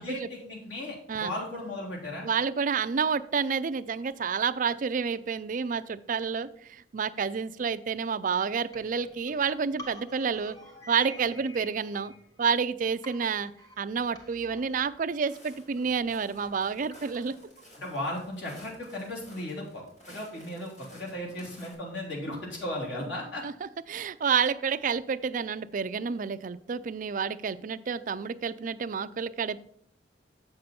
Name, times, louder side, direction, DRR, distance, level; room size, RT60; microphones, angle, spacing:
voice 1, 0.0-2.3 17.8-23.4, left 1 dB, 90° left, -3 dB, 3.4 m, -36 dB
voice 2, 2.2-10.6 10.9-12.1 12.4-13.5 13.8-17.4 23.4-29.6, right 6 dB, 50° right, 12 dB, 0.4 m, -29 dB
sound 1, 8.7-12.7 13.0-17.4, left 1 dB, 20° left, 1.3 m, -50 dB
Walk footsteps, 15.3-21.7, left 1 dB, 45° left, 3.3 m, -53 dB
7.6 x 6.7 x 4.3 m, 0.67 s
head